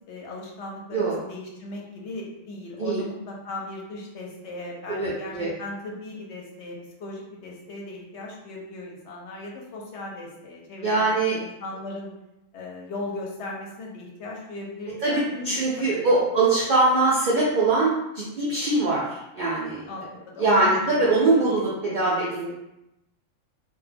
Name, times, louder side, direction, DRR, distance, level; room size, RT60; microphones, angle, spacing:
voice 1, 0.0-12.1 12.5-16.1 19.9-21.4 21.9-22.5, left 2 dB, 70° left, -1 dB, 0.8 m, -38 dB
voice 2, 4.9-5.5 10.8-11.4 14.9-15.2 15.4-19.9 20.4-22.5, right 2 dB, 75° right, -6 dB, 0.4 m, -22 dB
2.2 x 2.1 x 3.3 m, 0.89 s
omnidirectional pair, 1.3 m